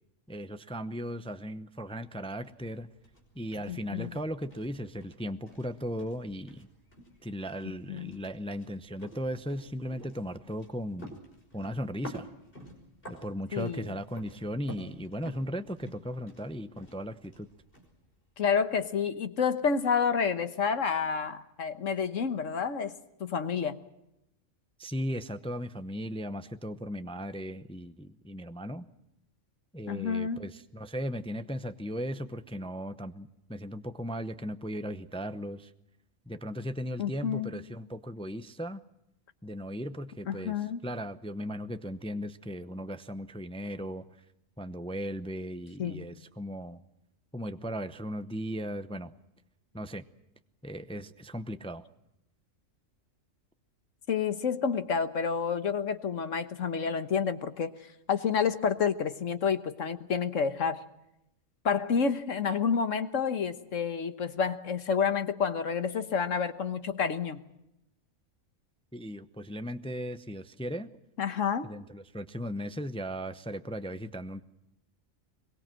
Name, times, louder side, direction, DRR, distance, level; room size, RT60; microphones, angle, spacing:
voice 1, 0.3-2.9 3.3-6.7 7.2-11.2 11.5-12.3 13.1-17.5 24.8-28.9 29.7-35.7 36.3-38.8 39.4-40.6 40.8-44.0 44.6-46.8 47.3-49.1 49.7-50.0 50.6-51.8 68.9-70.9 71.6-74.4, equal, 5° left, 10 dB, 0.6 m, -37 dB
sound 1, 1.9-18.9, equal, 45° left, 5.7 m, -51 dB
voice 2, 3.7-4.2 7.9-8.1 13.5-14.0 18.4-22.9 23.2-23.8 29.9-30.4 37.0-37.5 40.3-40.8 45.8-46.1 54.1-57.7 58.1-60.8 61.6-67.4 71.2-71.7, left 6 dB, 70° left, 10 dB, 1.6 m, -29 dB
23.5 x 22.5 x 7.7 m, 0.86 s
omnidirectional pair, 1.4 m